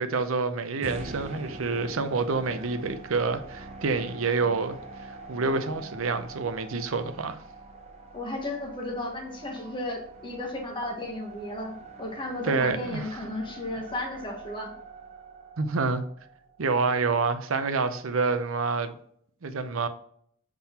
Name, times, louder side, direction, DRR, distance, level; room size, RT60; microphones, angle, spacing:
voice 1, 0.0-7.4 12.4-13.0 15.6-16.0 16.6-19.0 19.4-19.9, right 4 dB, 75° right, 0.7 m, -28 dB
sound 1, 0.8-17.0, right 2 dB, 30° right, 1.1 m, -44 dB
voice 2, 8.1-14.7, left 1 dB, 25° left, 1.2 m, -34 dB
7.4 x 3.9 x 4.2 m
head